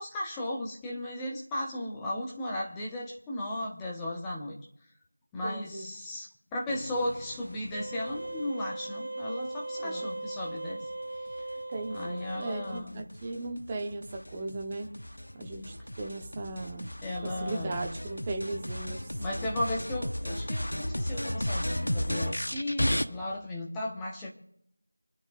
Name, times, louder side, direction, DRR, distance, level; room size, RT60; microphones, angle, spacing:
voice 1, 0.0-4.6 5.3-10.8 11.9-13.0 17.0-17.8 19.2-24.3, left 1 dB, 5° left, -3 dB, 1.0 m, -35 dB
voice 2, 5.4-5.9 9.8-10.2 11.7-14.9 15.3-16.9 17.2-19.1, right 2 dB, 15° right, 2 dB, 1.0 m, -37 dB
sound 1, 6.7-8.5 11.3-23.0, equal, 90° left, 1.0 m, -35 dB
sound 2, 7.7-12.8, right 2 dB, 45° right, 1.8 m, -38 dB
27.0 x 10.5 x 2.5 m, 0.78 s
figure-of-eight pair, 175°, 0 cm